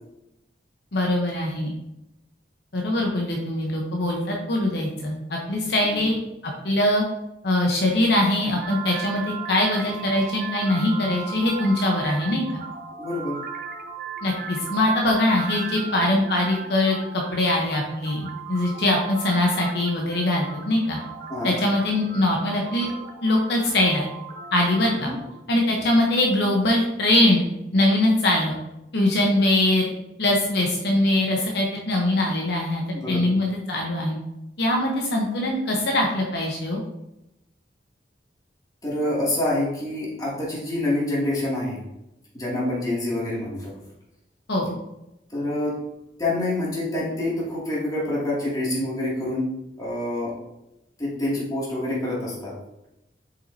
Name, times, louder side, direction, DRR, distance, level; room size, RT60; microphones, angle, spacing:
voice 1, 0.9-1.7 2.7-6.1 6.6-7.0 7.4-12.6 14.2-21.0 21.4-22.9 23.2-24.1 24.5-25.1 25.5-27.4 27.7-28.6 28.9-29.9 30.2-34.2 34.6-36.8 44.5-44.8, left 1 dB, 65° left, -1 dB, 1.0 m, -22 dB
sound 1, 8.6-25.4, right 6 dB, 60° right, 0.8 m, -37 dB
voice 2, 13.0-13.4 21.3-21.5 24.9-25.2 32.9-33.3 38.8-41.8 42.3-43.7 45.3-45.7 46.2-49.5 49.8-50.3 51.0-52.5, left 1 dB, 20° left, -7 dB, 2.5 m, -26 dB
7.2 x 5.6 x 2.8 m, 0.90 s
head